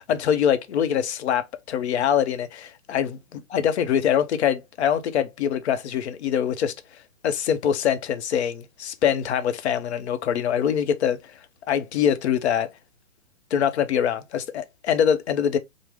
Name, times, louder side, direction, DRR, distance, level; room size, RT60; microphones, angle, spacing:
voice 1, 0.0-3.2 3.5-6.7 7.2-11.3 11.7-12.7 13.5-15.6, left 8 dB, 55° left, 0.6 m, -24 dB
3.5 x 2.0 x 3.2 m
hypercardioid pair, 140°, 42 cm